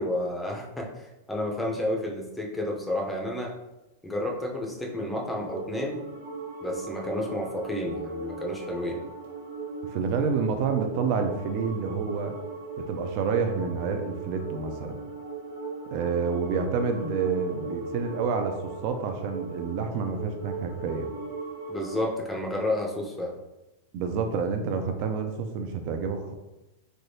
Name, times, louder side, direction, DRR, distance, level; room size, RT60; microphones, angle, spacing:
voice 1, 0.0-3.5 4.0-6.0 6.6-9.0 21.7-23.4, left 1 dB, 5° left, -1 dB, 0.6 m, -31 dB
sound 1, 4.5-22.1, right 3 dB, 90° right, 1.1 m, -38 dB
voice 2, 9.9-12.4 12.8-15.0 15.9-21.1 23.9-26.3, right 5 dB, 50° right, 6 dB, 0.5 m, -28 dB
3.4 x 2.8 x 2.7 m, 1.0 s
supercardioid pair, 135°, 0 cm